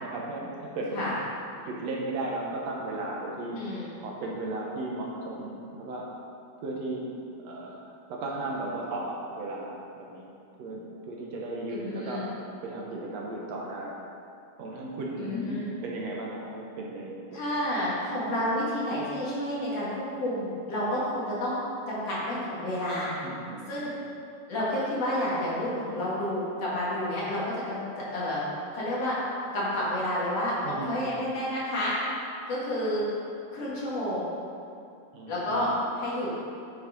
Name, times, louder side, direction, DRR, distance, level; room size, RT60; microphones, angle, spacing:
voice 1, 0.0-1.1 1.7-3.6 4.0-6.1 6.6-7.0 7.4-7.8 8.1-10.3 10.6-12.3 12.6-14.0 14.6-17.6 23.2-23.9 30.6-31.2 35.1-35.8, right 2 dB, 70° right, -3 dB, 2.0 m, -35 dB
voice 2, 3.5-3.9 11.7-12.3 15.2-15.7 17.3-21.6 21.9-23.1 23.7-23.9 24.5-27.8 28.1-28.4 28.7-29.2 29.5-31.9 32.5-33.0 33.5-34.3 35.3-36.3, left 1 dB, 60° left, -8 dB, 3.2 m, -30 dB
9.0 x 5.8 x 5.1 m, 2.5 s
omnidirectional pair, 3.3 m